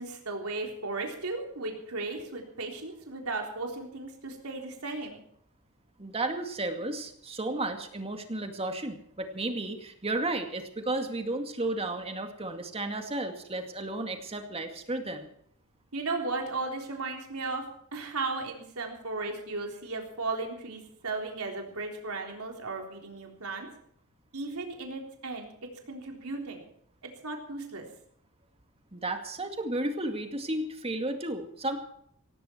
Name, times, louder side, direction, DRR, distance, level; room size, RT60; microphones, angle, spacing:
voice 1, 0.0-5.2 15.9-17.6 17.9-23.7 24.3-25.5 25.9-26.7 27.2-27.9, right 3 dB, 80° right, 1 dB, 3.7 m, -35 dB
voice 2, 6.0-15.3 28.9-31.8, right 2 dB, 25° right, 5 dB, 2.2 m, -33 dB
17.5 x 16.0 x 4.5 m, 0.68 s
head